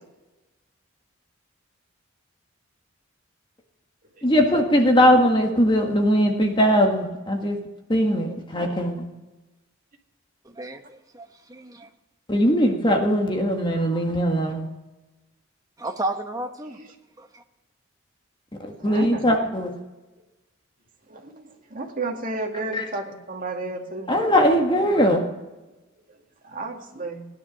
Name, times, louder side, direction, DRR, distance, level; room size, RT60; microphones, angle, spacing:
voice 1, 4.2-7.6 7.9-9.0 12.3-14.7 18.8-19.7 22.7-22.8 24.1-25.2, equal, 25° left, 3 dB, 1.7 m, -20 dB
voice 2, 10.6-11.9 15.8-16.8 17.2-17.4, right 2 dB, 15° right, 5 dB, 1.1 m, -33 dB
voice 3, 18.7-19.2 21.1-24.1 26.4-27.3, right 2 dB, 40° right, 1 dB, 2.2 m, -32 dB
16.5 x 10.5 x 6.3 m, 1.1 s
head